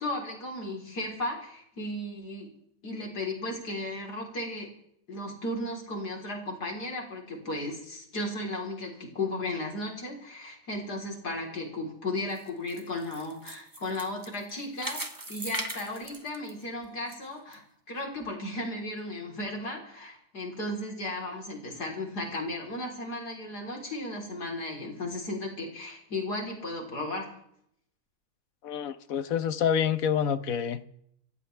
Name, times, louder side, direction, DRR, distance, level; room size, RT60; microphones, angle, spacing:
voice 1, 0.0-2.5 2.8-4.7 5.1-15.0 15.3-27.3, left 1 dB, 85° left, 4.4 m, -35 dB
sound 1, 12.2-17.1 17.5-17.6 18.2-18.3, right 2 dB, 15° right, 1.1 m, -39 dB
voice 2, 28.6-30.8, left 8 dB, 65° left, 1.2 m, -27 dB
26.5 x 15.0 x 3.4 m
omnidirectional pair, 1.7 m